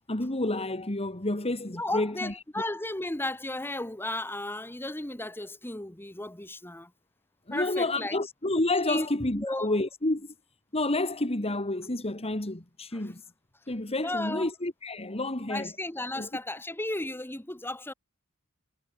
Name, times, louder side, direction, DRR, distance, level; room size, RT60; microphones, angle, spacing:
voice 1, 0.1-2.3 7.5-10.3 10.7-13.2 13.7-15.7 16.2-16.3, left 2 dB, 25° left, 2.3 m, -29 dB
voice 2, 1.7-6.9 7.5-8.2 8.9-9.1 9.3-9.8 12.9-13.1 14.0-14.5 15.5-17.9, left 1 dB, 10° left, 1.7 m, -34 dB
head